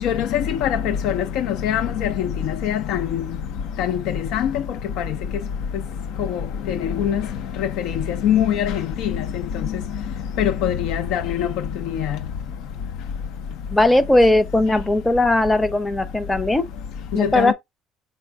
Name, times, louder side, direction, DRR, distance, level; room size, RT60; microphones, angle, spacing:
voice 1, 0.0-3.2 3.8-4.6 5.0-5.1 6.2-6.4 6.7-7.2 7.6-9.4 10.4-11.5 11.9-12.2 17.2-17.5, left 9 dB, 80° left, 0.4 m, -23 dB
voice 2, 13.7-16.7 17.1-17.5, left 1 dB, 10° left, 0.5 m, -18 dB
4.1 x 2.5 x 4.4 m
cardioid pair, 150°, 0 cm